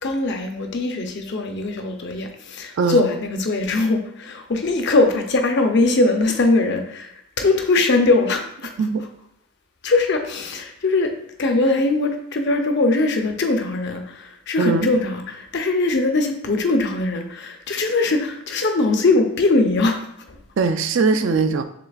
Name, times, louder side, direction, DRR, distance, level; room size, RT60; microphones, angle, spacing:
voice 1, 0.0-8.7 9.8-11.1 11.4-20.0 20.3-20.4, left 2 dB, 55° left, 5 dB, 0.6 m, -21 dB
voice 2, 14.6-14.9 20.6-21.6, right 4 dB, 60° right, 9 dB, 0.4 m, -20 dB
6.7 x 3.3 x 2.4 m, 0.72 s
head